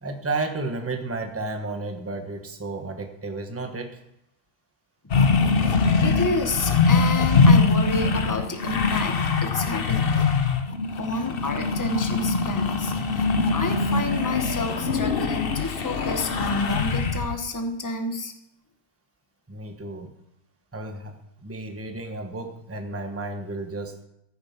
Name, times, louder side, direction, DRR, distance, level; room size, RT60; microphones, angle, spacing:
voice 1, 0.0-4.0 19.5-20.1 20.7-24.0, right 3 dB, 10° right, 5 dB, 1.1 m, -32 dB
sound 1, 5.1-17.4, left 4 dB, 45° left, 1.1 m, -22 dB
voice 2, 6.0-10.1 11.0-18.3, left 3 dB, 15° left, 5 dB, 1.2 m, -29 dB
15.0 x 8.9 x 5.9 m, 0.81 s
omnidirectional pair, 1.5 m